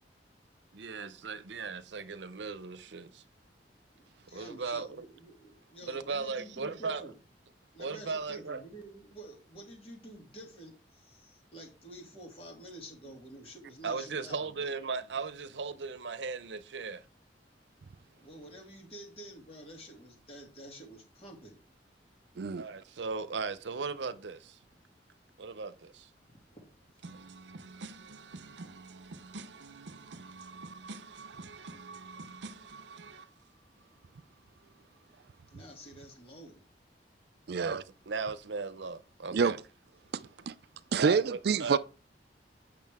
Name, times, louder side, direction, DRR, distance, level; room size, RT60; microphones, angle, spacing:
voice 1, 0.7-3.2 4.3-5.1 5.9-7.1 7.8-8.6 13.8-17.1 22.6-24.6 25.4-26.1 27.0-33.3 37.5-39.6 40.4-40.5 41.0-41.8, right 4 dB, 90° right, 0.7 m, -38 dB
voice 2, 3.9-7.1 7.7-14.7 18.2-21.6 26.5-26.7 35.5-36.6, right 1 dB, 35° left, 2.7 m, -49 dB
voice 3, 37.5-37.8 39.3-39.6 40.5-40.6 40.9-41.8, right 5 dB, 60° right, 0.4 m, -27 dB
8.5 x 6.3 x 3.5 m
head